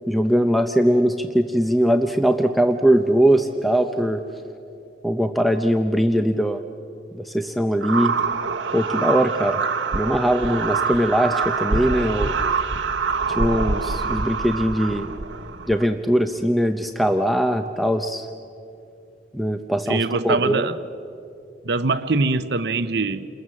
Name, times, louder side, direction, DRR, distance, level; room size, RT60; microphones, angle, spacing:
voice 1, 0.1-4.2 5.0-6.6 7.2-8.1 8.7-9.6 9.9-12.3 13.3-15.1 15.7-18.3 19.3-20.7, equal, ahead, 0.6 m, -21 dB
sound 1, 7.8-15.9, right 5 dB, 80° right, 1.1 m, -25 dB
voice 2, 19.9-20.8 21.6-23.3, right 3 dB, 60° right, 0.7 m, -23 dB
29.0 x 21.0 x 7.4 m
head